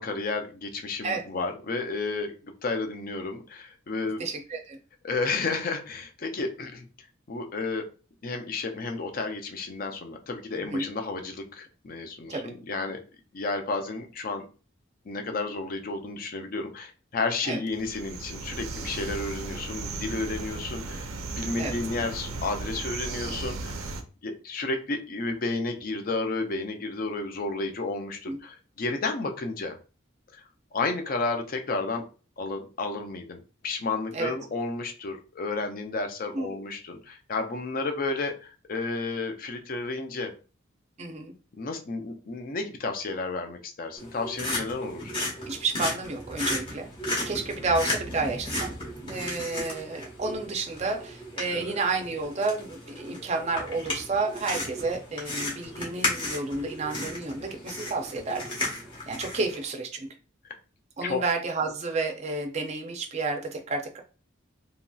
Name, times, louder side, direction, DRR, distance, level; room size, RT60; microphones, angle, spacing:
voice 1, 0.0-4.2 5.0-6.8 7.3-7.8 8.2-13.0 13.3-14.4 15.1-24.0 24.2-29.8 30.3-30.4 30.7-32.0 32.4-40.3 41.5-45.1 51.5-51.8 60.4-60.5 61.0-61.2, left 3 dB, 45° left, 5 dB, 0.4 m, -32 dB
voice 2, 4.2-4.8 10.5-10.9 12.3-12.5 17.4-17.6 21.6-21.8 28.3-28.4 34.1-34.3 36.3-36.6 41.0-41.3 45.5-46.9 47.3-48.7 49.0-58.4 59.0-60.1 61.0-64.0, right 3 dB, 30° right, 3 dB, 0.4 m, -30 dB
sound 1, 17.7-24.0, right 3 dB, 90° right, 0.5 m, -36 dB
sound 2, 44.0-59.6, left 1 dB, 25° left, 0.9 m, -34 dB
2.9 x 2.6 x 2.3 m, 0.36 s
head